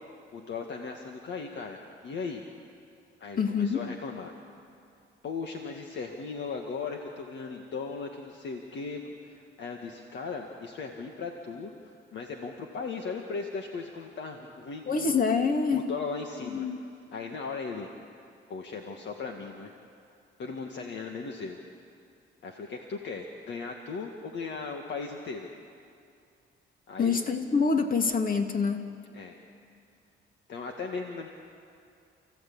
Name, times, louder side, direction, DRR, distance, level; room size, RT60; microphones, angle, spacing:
voice 1, 0.3-2.4 3.2-4.4 5.2-15.1 15.7-16.7 17.1-17.9 18.5-19.7 20.4-21.6 22.4-25.5 26.9-27.2 29.1-29.4 30.5-31.3, left 4 dB, 65° left, 2 dB, 1.8 m, -37 dB
voice 2, 3.4-3.8 14.9-15.9 16.4-16.8 27.0-28.9, left 5 dB, 45° left, 4 dB, 2.4 m, -26 dB
29.0 x 15.5 x 8.7 m, 2.4 s
cardioid pair, 90°, 20 cm